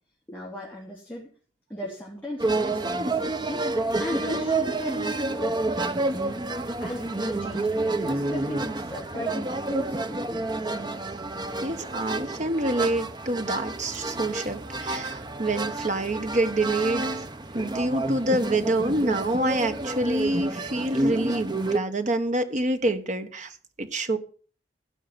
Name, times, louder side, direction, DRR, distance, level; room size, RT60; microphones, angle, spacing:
voice 1, 0.3-1.3 1.7-3.7 4.0-6.1 6.8-10.5, left 1 dB, 10° left, -5 dB, 3.4 m, -37 dB
sound 1, 2.4-21.8, right 2 dB, 25° right, 0.8 m, -29 dB
voice 2, 11.6-17.2 17.5-24.2, right 1 dB, 45° right, 8 dB, 1.4 m, -27 dB
16.0 x 5.7 x 7.6 m, 0.41 s
head